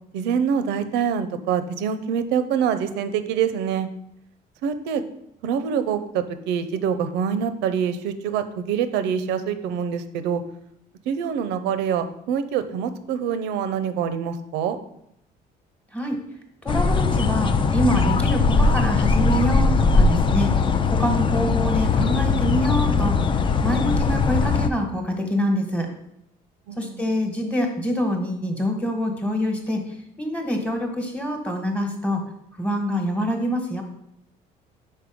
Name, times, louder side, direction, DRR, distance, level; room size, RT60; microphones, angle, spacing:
voice 1, 0.1-3.9 4.6-5.0 5.4-10.4 11.1-14.8 26.7-27.0, right 7 dB, 90° right, 11 dB, 0.5 m, -25 dB
voice 2, 16.6-25.9 26.8-32.2 32.5-33.8, equal, 10° left, 3 dB, 1.2 m, -26 dB
sound 1, 16.7-24.7, left 4 dB, 30° left, 0.4 m, -20 dB
5.2 x 4.3 x 4.9 m, 0.79 s
cardioid pair, 110°, 17 cm